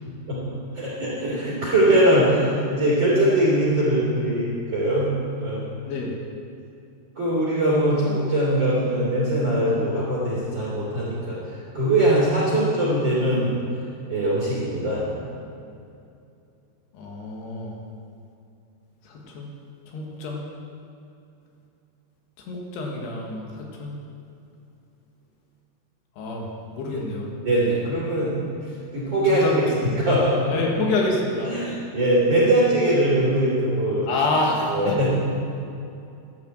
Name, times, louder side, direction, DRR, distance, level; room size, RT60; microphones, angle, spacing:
voice 1, 0.7-5.1 5.4-5.7 7.1-11.4 11.7-13.6 14.1-15.1 26.9-27.0 27.4-28.3 28.9-29.4 29.8-30.5 31.5-34.1 34.7-35.1, right 1 dB, 30° right, -8 dB, 3.4 m, -21 dB
voice 2, 16.9-17.8 19.0-19.5 19.9-20.5 22.4-24.0 26.2-27.3 29.2-29.9 30.5-31.5 34.1-35.1, left 2 dB, 85° left, -1 dB, 3.9 m, -27 dB
11.5 x 10.5 x 7.6 m, 2.6 s
omnidirectional pair, 4.7 m